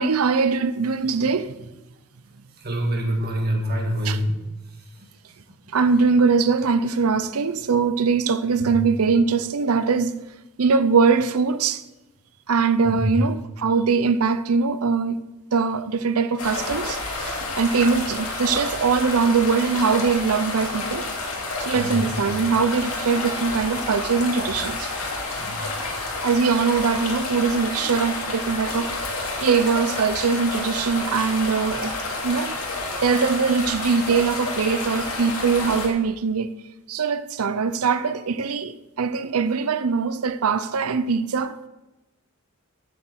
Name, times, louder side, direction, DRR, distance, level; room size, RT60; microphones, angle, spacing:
voice 1, 0.0-1.5 4.0-4.2 5.7-10.2 10.6-11.8 12.5-15.2 15.5-21.1 21.6-24.9 26.2-31.9 32.2-32.5 33.0-36.5 36.9-41.7, right 5 dB, 85° right, 0.6 m, -22 dB
voice 2, 2.6-4.4 8.6-8.7 12.9-13.1 21.7-22.1 25.4-25.6, equal, 50° right, 1.9 m, -25 dB
sound 1, 16.4-35.9, left 2 dB, 75° left, 2.5 m, -30 dB
8.5 x 8.3 x 7.9 m
head